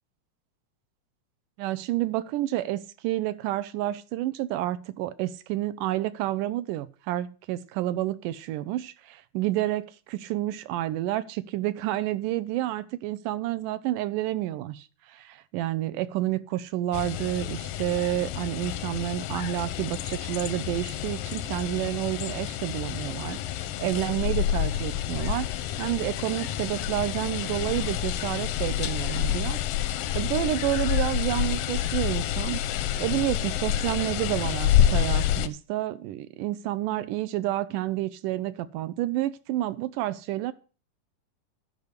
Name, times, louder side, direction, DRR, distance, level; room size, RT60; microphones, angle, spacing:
voice 1, 1.6-40.5, right 14 dB, 80° right, 2.1 m, -30 dB
sound 1, 16.9-35.5, left 11 dB, 85° left, 2.5 m, -28 dB
11.0 x 5.2 x 8.0 m
omnidirectional pair, 3.8 m